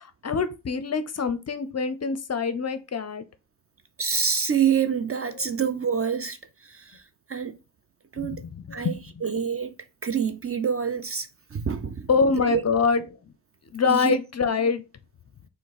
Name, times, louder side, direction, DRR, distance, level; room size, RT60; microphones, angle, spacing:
voice 1, 0.0-3.2 8.2-9.0 12.1-13.0 13.7-14.8, left 5 dB, 35° left, 0.5 m, -25 dB
voice 2, 4.0-6.4 6.6-7.0 7.3-7.6 8.1-8.4 8.7-8.9 9.2-9.8 10.0-12.1 12.4-12.6 13.9-14.2, right 7 dB, 30° right, 0.4 m, -26 dB
5.1 x 2.2 x 4.0 m
cardioid pair, 70°, 45 cm